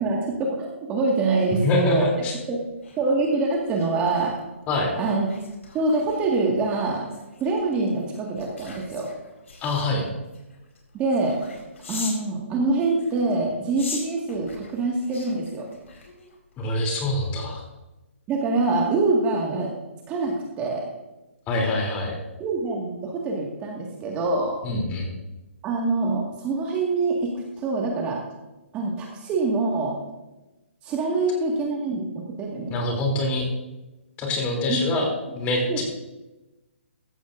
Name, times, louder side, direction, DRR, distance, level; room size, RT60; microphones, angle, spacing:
voice 1, 0.0-2.1 2.5-2.6 3.0-4.3 5.0-5.3 5.7-7.1 7.4-9.1 10.9-11.4 11.9-15.7 18.3-19.7 20.1-20.9 22.4-24.6 25.6-27.3 27.6-28.2 28.7-30.0 30.8-32.7 34.7-35.0 35.7-35.8, right 3 dB, 20° right, -1 dB, 1.8 m, -25 dB
sound 1, 1.1-12.3 12.9-16.5 16.9-17.2, left 4 dB, 75° left, 4.7 m, -43 dB
voice 2, 1.5-2.4 4.7-4.9 9.6-10.1 16.6-17.6 21.5-22.2 24.6-25.1 32.7-33.5 34.2-35.1 35.3-35.8, left 2 dB, 20° left, 1 dB, 3.1 m, -25 dB
15.5 x 14.0 x 2.6 m, 1.1 s
hypercardioid pair, 155°, 7 cm